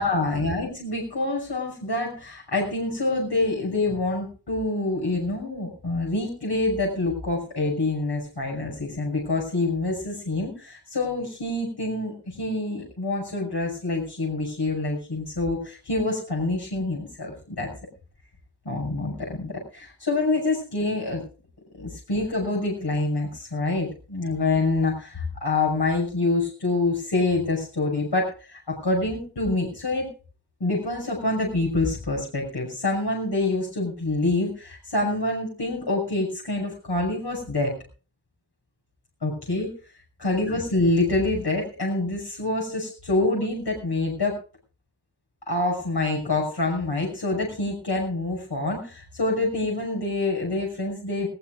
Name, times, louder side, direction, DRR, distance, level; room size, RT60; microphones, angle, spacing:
voice 1, 0.0-17.7 18.6-21.2 21.8-30.1 30.6-37.7 39.2-39.7 40.2-44.4 45.5-51.3, left 2 dB, 75° left, -1 dB, 6.1 m, -26 dB
21.0 x 18.5 x 2.5 m, 0.37 s
wide cardioid pair, 55°, 40 cm